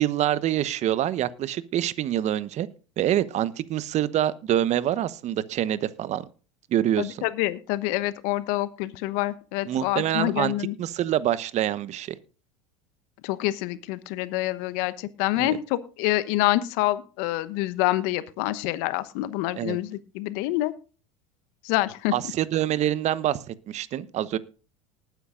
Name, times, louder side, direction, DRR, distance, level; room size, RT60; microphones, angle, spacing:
voice 1, 0.0-2.7 3.0-6.2 6.7-7.2 9.7-10.5 10.8-12.2 15.4-15.6 19.5-19.8 22.1-24.4, right 12 dB, 45° right, 16 dB, 1.1 m, -26 dB
voice 2, 7.0-10.7 13.2-20.7 21.6-22.1, left 17 dB, 60° left, 15 dB, 1.1 m, -27 dB
19.5 x 9.5 x 2.5 m, 0.36 s
hypercardioid pair, 80°, 17 cm